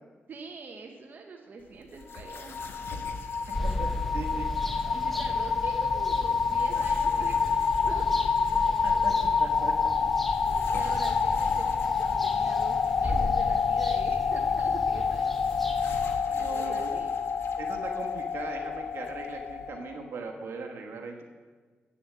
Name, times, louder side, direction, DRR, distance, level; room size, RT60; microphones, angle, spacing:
voice 1, 0.3-2.6 4.9-7.5 7.9-8.9 10.3-15.4 16.2-17.1, right 4 dB, 50° right, 1 dB, 0.9 m, -44 dB
sound 1, 1.6-19.7, left 4 dB, 75° left, 1.0 m, -47 dB
sound 2, 2.1-20.0, left 5 dB, 45° left, 0.3 m, -28 dB
sound 3, 3.5-16.2, left 1 dB, 5° left, 0.7 m, -36 dB
voice 2, 3.6-4.5 5.1-5.3 8.8-9.1 9.4-10.1 15.9-16.9 17.6-21.2, right 4 dB, 75° right, 2 dB, 1.2 m, -40 dB
8.5 x 7.1 x 7.4 m, 1.5 s
wide cardioid pair, 120°, 4 cm